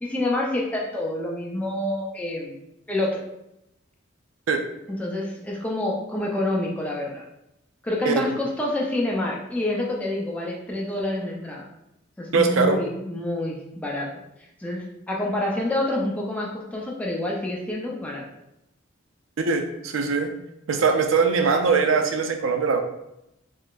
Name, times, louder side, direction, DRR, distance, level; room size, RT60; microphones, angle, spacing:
voice 1, 0.0-2.6 2.9-3.2 4.9-7.2 7.8-11.6 12.2-14.1 14.6-18.2, left 1 dB, 5° left, -3 dB, 0.5 m, -27 dB
voice 2, 12.3-12.8 19.4-20.3 20.7-22.8, right 4 dB, 85° right, 5 dB, 0.5 m, -21 dB
3.7 x 3.2 x 2.4 m, 0.83 s
head